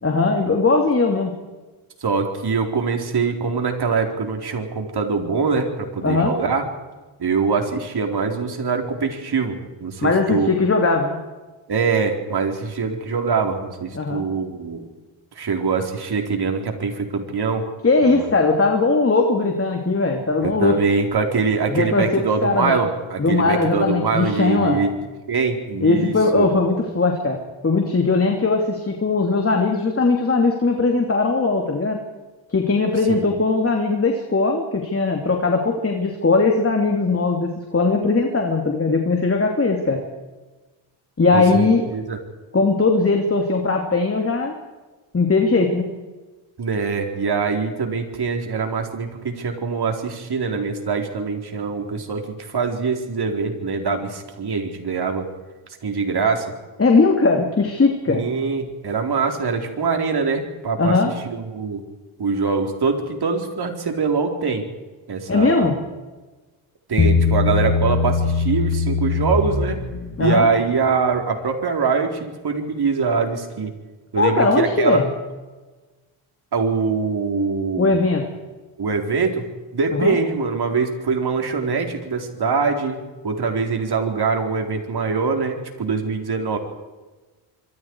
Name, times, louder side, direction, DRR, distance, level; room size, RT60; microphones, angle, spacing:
voice 1, 0.0-1.4 6.0-6.3 10.0-11.2 13.9-14.2 17.8-20.8 21.7-22.8 23.2-24.8 25.8-32.0 32.5-40.0 41.2-41.8 42.5-44.6 45.1-45.9 56.8-58.3 60.8-61.1 65.3-65.8 70.2-70.5 74.2-75.1 77.8-78.2 79.9-80.1, left 3 dB, 25° left, 2 dB, 3.0 m, -19 dB
voice 2, 2.0-6.6 7.2-10.5 11.7-14.9 15.4-17.7 18.0-18.3 20.4-25.0 25.3-26.5 33.3-33.4 41.3-42.2 46.6-55.3 55.8-56.5 58.1-61.0 61.2-61.8 62.2-64.7 65.1-65.7 66.9-69.8 70.2-73.7 74.1-75.0 76.5-78.0 78.8-79.4 79.7-86.6, right 5 dB, 50° right, 4 dB, 4.3 m, -23 dB
Bass guitar, 67.0-70.4, left 4 dB, 40° left, 2.7 m, -21 dB
25.5 x 25.0 x 4.8 m, 1.2 s
cardioid pair, 100°, 49 cm